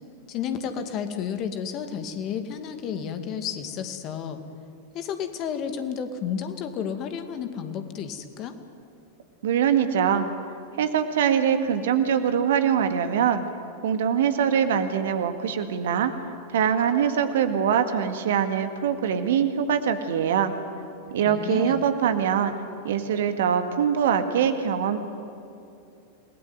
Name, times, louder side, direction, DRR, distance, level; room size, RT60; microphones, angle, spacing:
voice 1, 0.3-4.4 4.9-8.5 21.2-21.9, left 7 dB, 35° left, 8 dB, 2.3 m, -32 dB
voice 2, 9.4-10.3 10.8-13.4 13.8-16.1 16.5-20.5 21.1-22.5 22.8-25.0, right 8 dB, 60° right, 9 dB, 1.9 m, -23 dB
29.0 x 20.0 x 9.4 m, 2.6 s
figure-of-eight pair, 90°, 0 cm